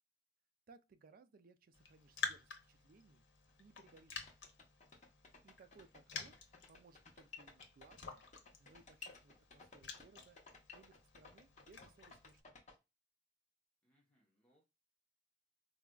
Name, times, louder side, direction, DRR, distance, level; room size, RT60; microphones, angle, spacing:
voice 1, 0.7-3.2 3.6-4.2 5.4-6.3 6.7-8.3 8.6-10.4 10.7-12.6, right 4 dB, 55° right, 0.4 m, -64 dB
Raindrop, 1.7-12.4, left 4 dB, 85° left, 0.8 m, -50 dB
Horse Galloping., 3.5-3.6 3.8-12.7, left 4 dB, 40° left, 0.8 m, -57 dB
voice 2, 13.8-14.6, equal, 5° left, 0.9 m, -76 dB
3.9 x 2.4 x 2.2 m
head